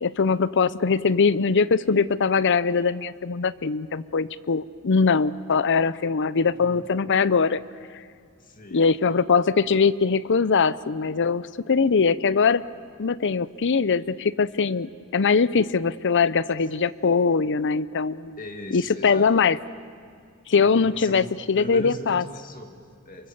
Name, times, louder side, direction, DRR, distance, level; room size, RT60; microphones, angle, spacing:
voice 1, 0.0-7.6 8.7-12.6 13.0-18.4 18.7-19.6 20.5-22.2, left 5 dB, 55° left, 18 dB, 0.6 m, -22 dB
voice 2, 6.5-6.9 8.4-8.9 18.4-19.3 20.5-21.3 21.6-23.3, left 1 dB, 40° left, 5 dB, 2.4 m, -39 dB
27.5 x 24.0 x 7.2 m, 2.3 s
head